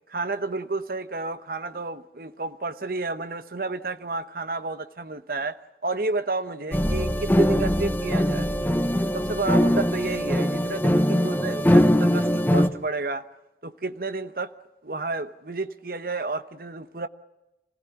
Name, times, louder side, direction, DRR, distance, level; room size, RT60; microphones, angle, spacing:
voice 1, 0.1-8.5 9.1-13.3 13.6-14.5 14.8-17.1, right 3 dB, 50° right, 0.9 m, -31 dB
sound 1, 6.7-12.7, equal, 10° left, 0.8 m, -22 dB
26.5 x 16.0 x 9.8 m
head